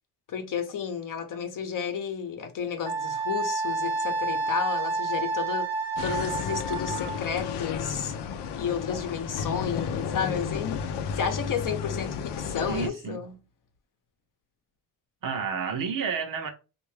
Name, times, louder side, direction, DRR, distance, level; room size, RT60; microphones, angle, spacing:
voice 1, 0.3-5.7 6.0-8.1 8.6-10.8 11.1-13.4, left 7 dB, 50° left, 0.8 m, -32 dB
Wind instrument woodwind instrument, 2.9-7.2, right 3 dB, 5° left, 0.8 m, -29 dB
sound 1, 6.0-12.9, left 6 dB, 80° left, 0.6 m, -32 dB
voice 2, 12.7-13.2 15.2-16.5, right 6 dB, 55° right, 0.8 m, -30 dB
3.3 x 2.5 x 3.2 m
cardioid pair, 125°, 40 cm